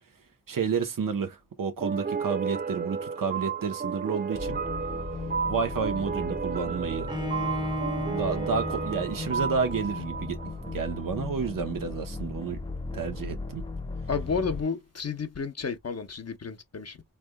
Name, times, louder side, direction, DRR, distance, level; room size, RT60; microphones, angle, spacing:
voice 1, 0.5-4.6 5.5-7.1 8.1-10.4 10.7-12.6 12.9-13.6, right 5 dB, 85° right, 0.9 m, -30 dB
sound 1, 1.8-11.1, right 6 dB, 30° right, 0.4 m, -33 dB
sound 2, 4.3-14.6, left 3 dB, 15° left, 0.9 m, -37 dB
Bowed string instrument, 7.1-10.0, left 1 dB, 15° right, 0.8 m, -34 dB
voice 2, 14.1-17.0, left 5 dB, 50° left, 0.8 m, -31 dB
3.6 x 3.3 x 2.2 m
wide cardioid pair, 55°, 32 cm